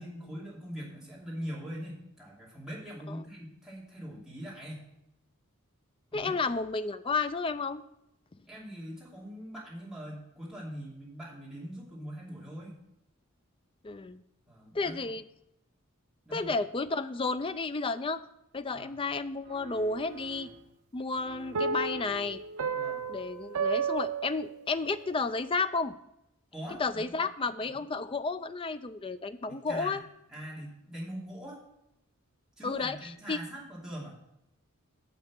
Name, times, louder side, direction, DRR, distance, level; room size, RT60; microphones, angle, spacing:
voice 1, 0.0-4.9 6.1-6.3 8.5-12.8 14.5-15.1 16.2-16.5 18.7-19.0 22.7-23.0 26.5-27.1 27.7-27.8 29.5-30.0 30.3-31.6 32.6-34.2, equal, 5° right, -6 dB, 2.7 m, -42 dB
voice 2, 6.1-7.8 13.8-14.2 14.7-15.2 16.3-18.2 18.5-20.5 20.9-22.4 23.1-25.9 26.8-30.0 32.6-33.4, left 3 dB, 25° left, 12 dB, 0.4 m, -32 dB
sound 1, 19.4-20.8 21.1-22.7, right 4 dB, 50° right, 0.9 m, -51 dB
sound 2, 21.5-25.1, right 5 dB, 90° right, 0.6 m, -32 dB
9.9 x 6.3 x 5.9 m, 0.82 s
head